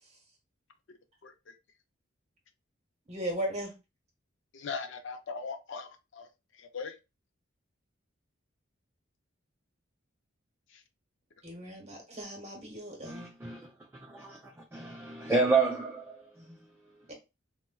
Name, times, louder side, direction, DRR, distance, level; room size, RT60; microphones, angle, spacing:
voice 1, 3.1-3.7 11.4-13.3 17.1-17.2, right 1 dB, 35° right, 1.0 m, -37 dB
voice 2, 4.5-5.9 6.2-6.3 6.7-6.9, left 5 dB, 60° left, 0.5 m, -38 dB
voice 3, 13.0-17.1, right 4 dB, 10° right, 0.3 m, -31 dB
4.2 x 2.1 x 2.2 m
head